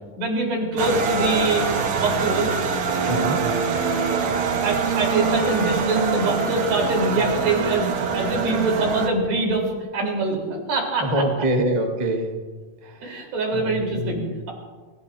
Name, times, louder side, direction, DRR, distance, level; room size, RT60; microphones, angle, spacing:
voice 1, 0.2-1.7 2.0-2.5 4.6-9.6 9.9-11.2 13.0-14.5, right 2 dB, 85° right, -1 dB, 5.8 m, -24 dB
sound 1, 0.8-9.1, right 5 dB, 60° right, 1.5 m, -24 dB
voice 2, 3.1-3.4 11.0-12.4 13.5-14.1, right 1 dB, 30° right, 1 dB, 0.7 m, -24 dB
28.0 x 16.0 x 2.8 m, 1.4 s
omnidirectional pair, 4.1 m